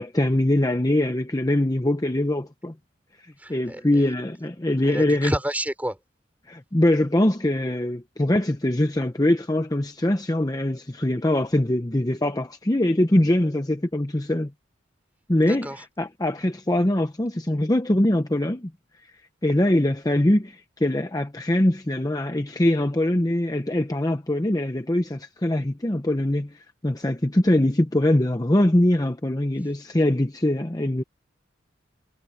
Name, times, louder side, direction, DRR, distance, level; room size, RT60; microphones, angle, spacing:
voice 1, 0.0-2.7 3.2-5.3 6.5-14.5 15.3-15.7 16.0-18.7 19.0-31.0, left 1 dB, 20° left, 0.8 m, -23 dB
voice 2, 3.4-3.8 4.8-6.0 15.5-15.8, right 1 dB, 10° right, 5.5 m, -30 dB
head